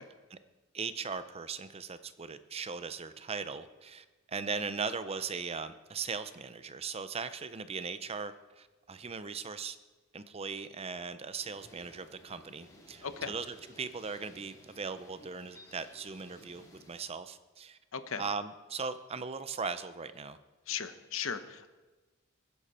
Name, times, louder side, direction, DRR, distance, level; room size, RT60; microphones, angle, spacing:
voice 1, 0.7-9.8 10.1-17.8 18.2-20.4, right 5 dB, 30° right, 12 dB, 0.5 m, -39 dB
sound 1, 11.4-17.0, left 1 dB, 15° left, 2.6 m, -56 dB
voice 2, 13.0-13.3 17.9-18.2 20.7-21.7, left 7 dB, 65° left, 11 dB, 0.9 m, -37 dB
21.0 x 10.0 x 4.3 m, 1.2 s
head